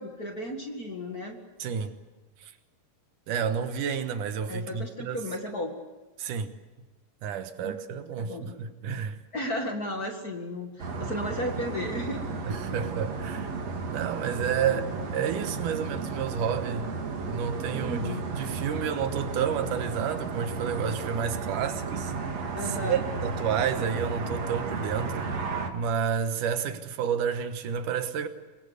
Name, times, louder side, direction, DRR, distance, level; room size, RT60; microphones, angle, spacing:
voice 1, 0.0-1.4 4.5-5.8 7.6-7.8 8.2-8.5 9.3-12.3 12.7-12.8 14.6-14.8 17.7-18.3 22.6-23.0, left 1 dB, 35° left, 1.9 m, -34 dB
voice 2, 1.6-2.0 2.4-2.5 3.3-5.2 6.2-6.5 7.2-9.2 12.5-13.5 13.9-14.9 15.1-16.9 17.3-22.1 22.8-25.3 25.7-28.3, right 7 dB, 75° right, 2.7 m, -30 dB
sound 1, 10.8-25.7, right 4 dB, 55° right, 3.2 m, -33 dB
25.5 x 21.0 x 8.1 m
omnidirectional pair, 3.7 m